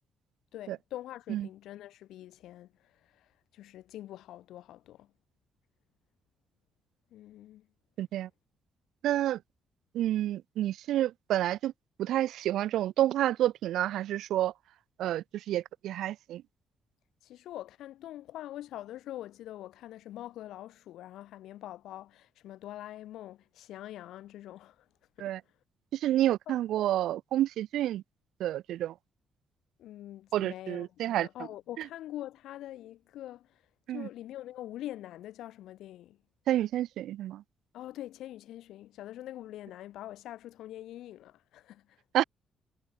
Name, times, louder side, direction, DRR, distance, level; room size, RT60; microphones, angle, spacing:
voice 1, 0.5-5.1 7.1-7.7 17.2-24.9 25.2-25.3 26.5-26.6 29.8-33.6 33.9-36.2 37.7-42.0, left 13 dB, 85° left, 3.5 m, -44 dB
voice 2, 8.0-8.3 9.0-9.4 9.9-11.7 12.0-14.5 15.0-16.4 25.2-25.4 25.9-28.0 28.4-28.9 30.3-31.3 33.9-34.1 36.5-37.4 42.1-42.2, right 13 dB, 80° right, 1.1 m, -29 dB
cardioid pair, 90°, 0 cm